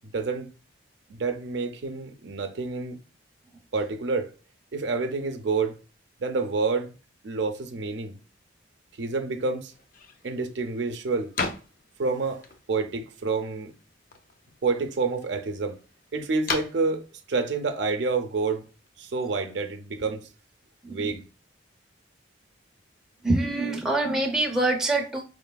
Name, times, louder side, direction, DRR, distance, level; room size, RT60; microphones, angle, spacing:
voice 1, 0.0-0.5 1.1-3.0 3.7-4.3 4.7-5.8 6.2-6.9 7.2-8.2 9.0-9.7 10.2-11.3 12.0-13.7 14.6-15.8 16.1-18.7 19.0-20.3 20.9-21.3, right 4 dB, 70° right, 0.6 m, -28 dB
sound 1, 9.7-18.9, left 4 dB, 45° left, 0.5 m, -39 dB
voice 2, 20.8-21.1 23.2-25.2, right 2 dB, 5° right, 0.6 m, -25 dB
4.8 x 3.1 x 2.2 m
head